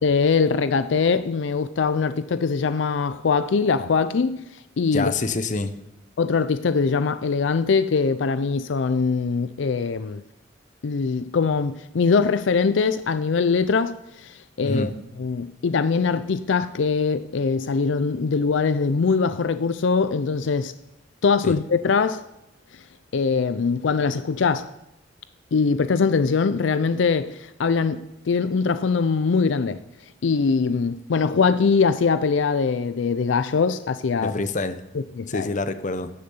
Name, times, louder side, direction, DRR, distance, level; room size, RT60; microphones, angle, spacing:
voice 1, 0.0-4.5 4.8-5.1 6.2-10.2 10.8-14.9 15.2-20.7 21.2-22.2 22.7-22.8 23.1-24.7 25.5-29.8 30.2-34.3 34.9-35.5, left 5 dB, 75° left, 0.5 m, -22 dB
voice 2, 4.9-5.7 14.6-14.9 21.4-21.6 34.2-34.8 35.3-36.1, left 3 dB, 40° left, 0.8 m, -26 dB
12.0 x 6.6 x 7.9 m
head